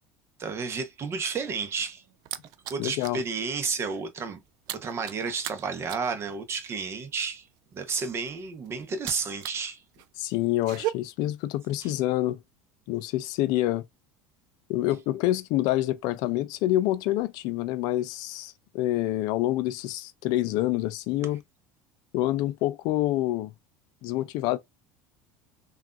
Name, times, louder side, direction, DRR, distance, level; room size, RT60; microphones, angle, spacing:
voice 1, 0.4-2.0 2.7-4.4 4.7-7.5 7.7-9.8 11.8-11.9, right 5 dB, 35° right, 0.8 m, -31 dB
sound 1, 1.5-3.3 3.6-9.7 9.9-10.9, right 15 dB, 60° right, 0.4 m, -38 dB
voice 2, 2.8-3.2 10.2-12.4 12.9-13.8 14.7-21.4 22.1-23.5 24.0-24.6, left 15 dB, 65° left, 0.4 m, -27 dB
3.4 x 2.4 x 2.3 m
supercardioid pair, 95°, 7 cm